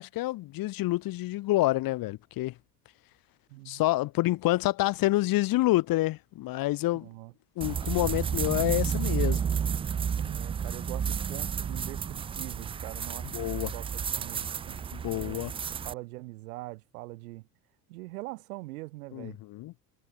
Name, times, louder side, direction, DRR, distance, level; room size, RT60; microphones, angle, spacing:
voice 1, 0.0-2.5 3.6-7.1 7.6-9.4 13.3-13.7 14.9-15.5 19.1-19.7, left 17 dB, 45° left, 1.6 m, -28 dB
voice 2, 3.5-3.8 6.9-7.3 10.2-13.9 14.1-14.8 15.1-15.5 15.8-17.5 17.9-19.4, right 21 dB, 60° right, 3.4 m, -43 dB
sound 1, 7.6-15.9, right 7 dB, 10° right, 0.4 m, -31 dB
figure-of-eight pair, 65°, 50 cm